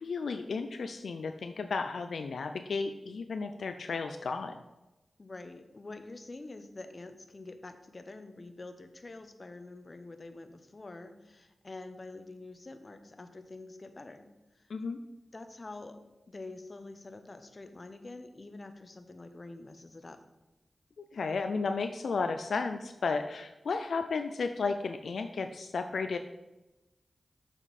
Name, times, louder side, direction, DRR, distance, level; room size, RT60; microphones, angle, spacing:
voice 1, 0.0-4.6 14.7-15.0 21.1-26.2, left 4 dB, 85° left, 7 dB, 0.3 m, -33 dB
voice 2, 5.2-14.3 14.5-14.6 15.3-16.0 16.3-20.2, left 2 dB, 45° left, 8 dB, 0.8 m, -46 dB
7.3 x 5.4 x 4.1 m, 1.0 s
cardioid pair, 45°, 0 cm